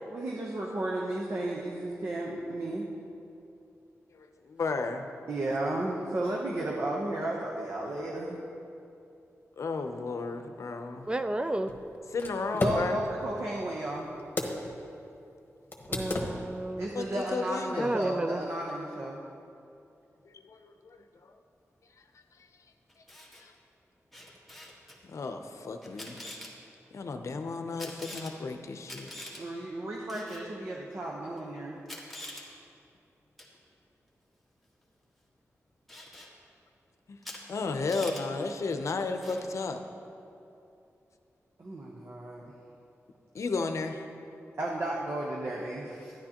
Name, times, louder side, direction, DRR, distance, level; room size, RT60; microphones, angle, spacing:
voice 1, 0.1-2.9 5.3-8.4 12.5-14.1 16.8-19.2 29.4-31.8 41.6-42.5 44.6-46.1, right 1 dB, 55° right, -2 dB, 0.9 m, -33 dB
voice 2, 4.6-5.1 9.6-11.1 12.1-13.0 16.9-17.0 17.3-17.9 20.2-21.3 23.4-23.5 25.0-26.2 26.9-29.1 37.1-37.2 37.5-39.8 43.3-44.0, left 3 dB, 70° left, 6 dB, 0.6 m, -33 dB
sound 1, 11.0-14.8 15.1-15.2 15.7-16.7, left 2 dB, 40° left, 1.2 m, -35 dB
voice 3, 11.1-11.7 15.9-16.9 17.7-18.4, right 1 dB, 20° right, 9 dB, 0.4 m, -31 dB
Camera, 22.9-23.4 24.1-25.0 25.8-26.5 27.8-28.3 28.9-29.4 30.1-30.4 31.4-31.5 31.9-32.4 33.4-33.6 35.9-36.3 37.2-37.4 37.7-38.2 39.2-39.5, left 1 dB, ahead, 1.5 m, -44 dB
12.0 x 10.5 x 2.9 m, 2.7 s
wide cardioid pair, 100°, 5 cm